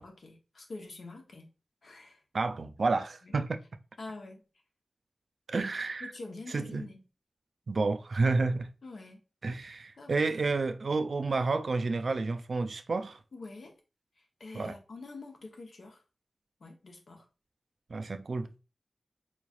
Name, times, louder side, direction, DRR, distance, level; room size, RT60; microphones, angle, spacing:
voice 1, 0.0-1.5 1.8-2.2 3.2-3.3 4.0-4.4 6.0-7.0 8.8-9.2 10.0-10.1 13.3-13.7 14.2-16.0 16.6-17.3, left 3 dB, 75° left, 0.8 m, -46 dB
voice 2, 2.3-3.6 5.5-6.1 6.5-6.8 7.7-8.7 9.4-13.2 14.5-14.7 17.9-18.5, right 3 dB, 65° right, 0.3 m, -30 dB
3.8 x 3.1 x 2.4 m
wide cardioid pair, 110°, 0 cm